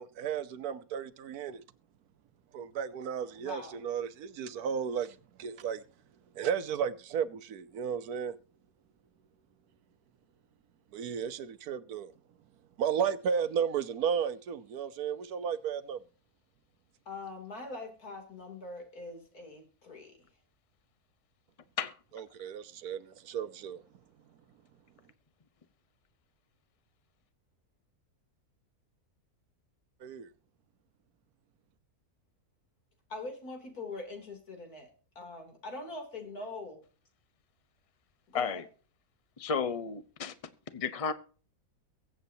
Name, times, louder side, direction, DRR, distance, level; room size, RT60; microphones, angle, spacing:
voice 1, 0.0-1.6 2.5-5.8 6.4-8.3 10.9-12.1 12.8-16.0 22.3-23.8 30.0-30.3, right 7 dB, 85° right, 1.4 m, -34 dB
voice 2, 3.4-3.8 17.1-20.3 33.1-34.9 35.2-36.8 38.3-38.6, left 3 dB, 90° left, 3.6 m, -43 dB
voice 3, 39.4-40.3 40.7-41.1, left 6 dB, 30° left, 0.8 m, -32 dB
23.0 x 8.0 x 2.8 m
omnidirectional pair, 1.6 m